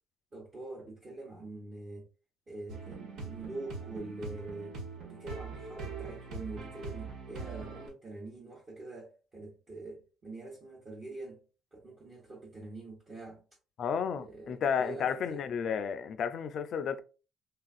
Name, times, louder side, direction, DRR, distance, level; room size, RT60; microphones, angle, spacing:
voice 1, 0.3-2.1 2.5-11.4 11.7-13.4 14.1-15.5, right 2 dB, 30° right, 0.9 m, -44 dB
sound 1, 2.7-7.9, right 4 dB, 70° right, 0.9 m, -42 dB
voice 2, 13.8-17.0, left 7 dB, 50° left, 0.3 m, -32 dB
3.3 x 2.4 x 2.4 m
cardioid pair, 115°, 0 cm